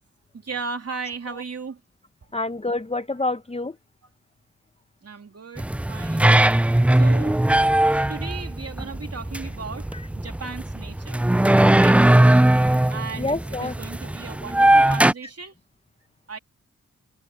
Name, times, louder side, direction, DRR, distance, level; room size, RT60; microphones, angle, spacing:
voice 1, 0.3-1.8 5.0-6.3 6.9-7.4 8.1-9.9 10.1-11.2 11.6-12.0 12.9-15.5 16.3-16.4, right 5 dB, 50° right, 3.2 m, -36 dB
voice 2, 2.3-3.7 13.2-13.7, left 2 dB, 20° left, 1.0 m, -27 dB
sound 1, 5.6-15.1, right 1 dB, 5° right, 0.3 m, -19 dB
cardioid pair, 60°, 31 cm